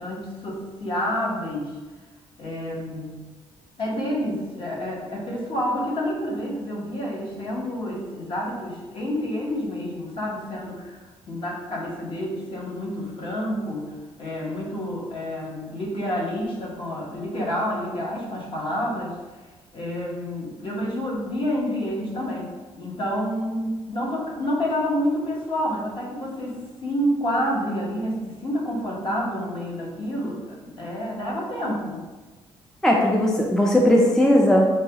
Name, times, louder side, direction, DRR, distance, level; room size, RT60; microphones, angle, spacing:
voice 1, 0.0-1.7 2.4-3.2 3.8-19.2 19.7-22.5 22.8-32.0, equal, 55° left, -3 dB, 1.0 m, -28 dB
voice 2, 32.8-34.8, left 1 dB, 5° left, -1 dB, 0.3 m, -18 dB
4.7 x 2.3 x 2.8 m, 1.3 s
cardioid pair, 125°, 11 cm